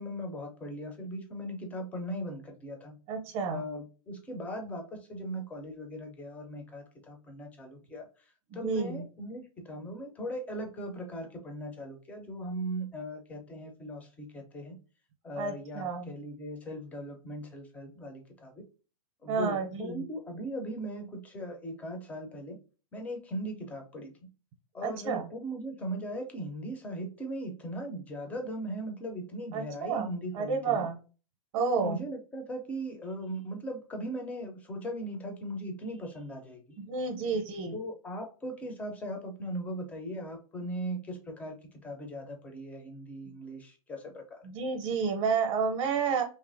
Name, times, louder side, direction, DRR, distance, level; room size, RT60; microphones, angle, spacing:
voice 1, 0.0-3.0 3.5-8.1 8.5-14.8 15.2-18.6 19.2-22.6 22.9-24.1 24.7-30.9 31.6-36.9 37.7-41.6 41.8-44.4, equal, 10° left, 3 dB, 0.4 m, -39 dB
voice 2, 3.1-3.6 8.5-9.0 15.4-16.1 19.3-20.0 24.8-25.2 29.5-31.0 31.5-32.0 36.8-37.8 44.4-46.2, right 5 dB, 40° right, 2 dB, 0.6 m, -30 dB
2.7 x 2.4 x 2.5 m, 0.35 s
hypercardioid pair, 145°, 19 cm